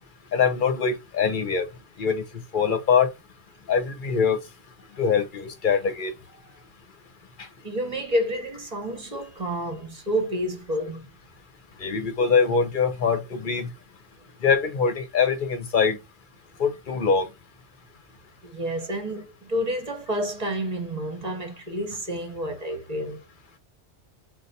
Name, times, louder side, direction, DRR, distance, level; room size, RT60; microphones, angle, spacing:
voice 1, 0.3-1.7 2.0-2.2 2.5-3.1 3.7-4.4 5.0-6.1 11.8-13.7 14.4-16.0 16.6-17.3, left 6 dB, 55° left, 0.9 m, -23 dB
voice 2, 7.6-11.1 18.4-23.2, equal, 35° right, 1.1 m, -29 dB
3.9 x 2.3 x 3.9 m
omnidirectional pair, 1.1 m